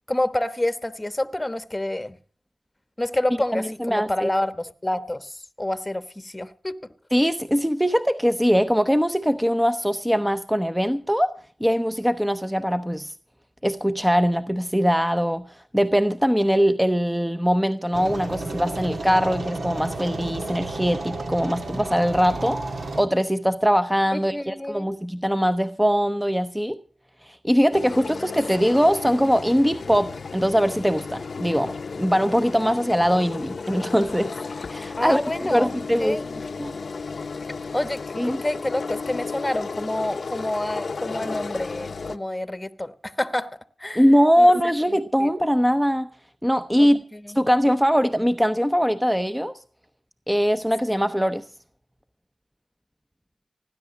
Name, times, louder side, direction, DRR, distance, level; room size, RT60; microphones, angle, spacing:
voice 1, 0.1-2.2 3.0-6.8 24.1-25.0 35.0-35.7 36.0-36.4 37.7-44.0 44.4-44.5 45.2-45.3 46.8-47.4, left 1 dB, 20° left, 1.1 m, -28 dB
voice 2, 3.5-4.3 7.1-11.3 11.6-13.1 13.6-15.5 15.7-26.8 27.3-34.3 34.7-35.2 35.5-36.2 36.6-36.7 38.2-38.4 43.9-46.1 46.4-47.0 47.3-49.5 50.3-51.4, equal, 5° right, 0.8 m, -21 dB
sound 1, 17.9-23.0, right 2 dB, 75° right, 1.7 m, -32 dB
sound 2, 27.7-42.2, left 4 dB, 70° left, 0.6 m, -34 dB
16.0 x 10.5 x 7.0 m
cardioid pair, 45°, 0 cm